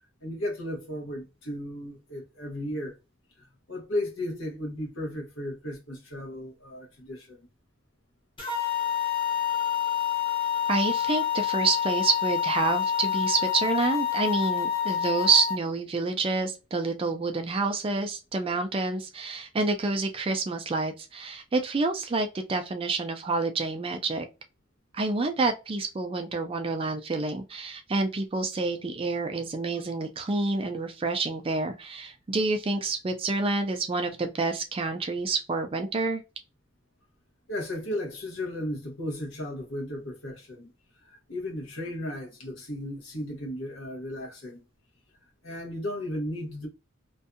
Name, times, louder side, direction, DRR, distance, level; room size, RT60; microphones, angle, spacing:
voice 1, 0.2-3.0 3.4-7.5 37.5-40.7 41.0-44.6 45.4-46.7, left 1 dB, 60° left, 0.9 m, -35 dB
sound 1, 8.4-15.6, left 9 dB, 25° left, 0.9 m, -27 dB
voice 2, 10.7-24.2 24.9-36.2, right 3 dB, 25° right, 0.3 m, -28 dB
2.6 x 2.2 x 2.4 m
head